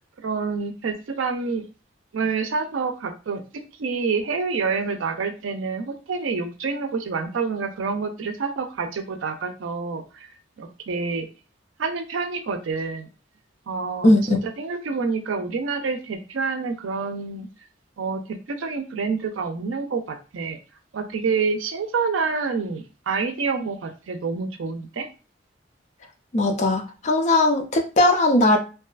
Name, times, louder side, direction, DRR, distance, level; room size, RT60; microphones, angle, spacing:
voice 1, 0.2-1.6 2.1-3.4 3.8-10.3 10.6-11.3 11.8-13.1 13.7-17.5 18.0-20.6 20.9-25.1, right 4 dB, 90° right, 6 dB, 0.5 m, -27 dB
voice 2, 14.0-14.4 26.3-28.6, left 2 dB, 35° left, 4 dB, 0.4 m, -18 dB
2.6 x 2.3 x 2.3 m, 0.33 s
head